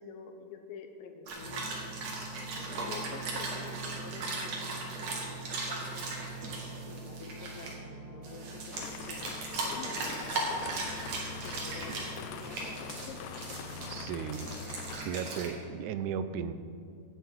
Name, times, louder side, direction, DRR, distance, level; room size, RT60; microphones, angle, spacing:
voice 1, 0.0-1.9 2.6-6.2 6.9-9.2 9.6-10.8 11.4-13.2, left 5 dB, 65° left, 5 dB, 1.4 m, -48 dB
sound 1, 1.3-15.0, right 2 dB, 30° right, 2.9 m, -45 dB
sound 2, 1.3-7.7 8.2-13.9 14.3-15.5, right 2 dB, 60° right, 2.7 m, -38 dB
sound 3, 8.7-15.0, left 9 dB, 90° left, 2.2 m, -45 dB
voice 2, 13.9-14.6 14.9-16.5, right 7 dB, 80° right, 11 dB, 2.0 m, -35 dB
17.0 x 8.0 x 4.6 m, 2.4 s
omnidirectional pair, 3.7 m